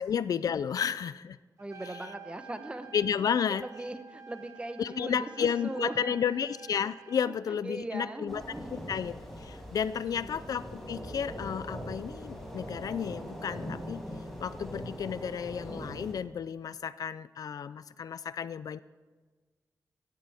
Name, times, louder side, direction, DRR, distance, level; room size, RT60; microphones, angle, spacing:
voice 1, 0.0-1.4 2.9-3.7 4.8-8.4 8.7-14.0 14.4-18.8, left 7 dB, 65° left, 16 dB, 0.4 m, -32 dB
voice 2, 1.6-2.9 3.5-6.5 7.2-8.9 10.0-10.4, right 2 dB, 15° right, 9 dB, 0.9 m, -40 dB
Trumpet, 1.6-7.4, right 6 dB, 50° right, 1.1 m, -51 dB
sound 1, 8.3-16.1, equal, 5° left, 2.9 m, -41 dB
17.0 x 13.5 x 3.5 m, 1.4 s
wide cardioid pair, 140°, 7 cm